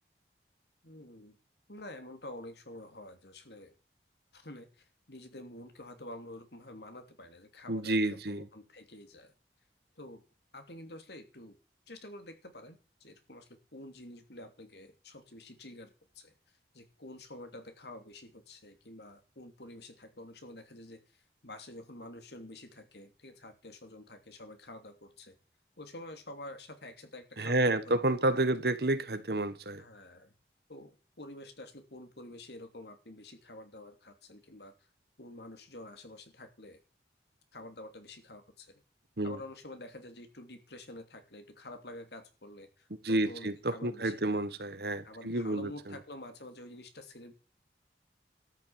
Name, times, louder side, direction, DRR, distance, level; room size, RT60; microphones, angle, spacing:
voice 1, 0.8-1.4 1.7-3.7 4.3-8.0 8.3-9.3 10.0-10.2 10.5-11.6 11.9-16.3 16.7-25.3 25.8-28.0 29.8-30.3 30.7-34.7 35.2-36.8 37.5-38.8 39.2-44.5 45.0-47.3, left 1 dB, 70° left, 3.0 m, -48 dB
voice 2, 7.7-8.5 27.4-29.8 39.2-39.4 43.0-46.0, right 2 dB, 65° right, 1.5 m, -30 dB
13.0 x 7.6 x 8.8 m
head